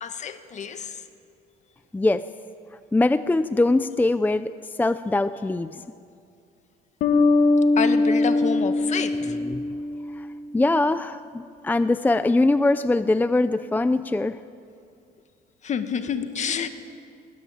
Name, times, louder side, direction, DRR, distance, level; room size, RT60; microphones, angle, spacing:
voice 1, 0.0-1.0 7.8-9.4 15.6-16.7, left 7 dB, 45° left, 9 dB, 1.9 m, -28 dB
voice 2, 1.9-2.3 2.9-5.8 9.3-9.7 10.1-10.3 10.5-14.4, left 2 dB, 10° left, 13 dB, 0.5 m, -22 dB
sound 1, 7.0-10.4, left 2 dB, 65° left, 1.9 m, -21 dB
26.5 x 21.5 x 8.8 m, 2.5 s
cardioid pair, 110°, 17 cm